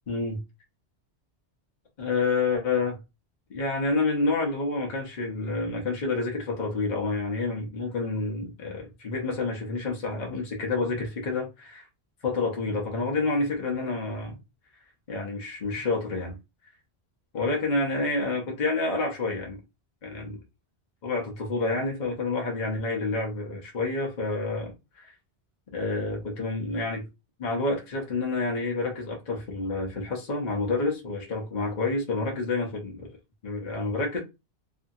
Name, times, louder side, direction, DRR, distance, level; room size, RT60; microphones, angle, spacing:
voice 1, 0.1-0.4 2.0-3.0 3.5-11.9 12.2-14.4 15.1-16.4 17.3-19.6 20.0-20.4 21.0-25.1 25.7-27.1 27.4-33.1 33.4-34.2, left 3 dB, 45° left, 0.9 m, -28 dB
2.7 x 2.5 x 2.6 m
omnidirectional pair, 1.1 m